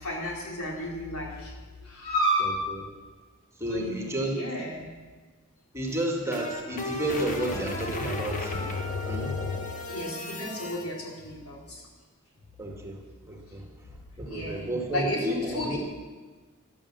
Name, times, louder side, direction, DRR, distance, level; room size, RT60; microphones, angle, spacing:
voice 1, 0.0-1.5 1.8-2.6 3.7-4.9 9.9-11.8 14.3-15.8, equal, 70° left, -2 dB, 3.8 m, -32 dB
voice 2, 2.4-2.8 3.6-4.4 5.7-8.6 9.0-9.4 12.6-13.0 13.3-15.8, right 1 dB, 15° right, 0 dB, 1.9 m, -32 dB
sound 1, 5.9-10.8, left 2 dB, 35° left, 1.5 m, -33 dB
12.5 x 11.0 x 7.4 m, 1.4 s
head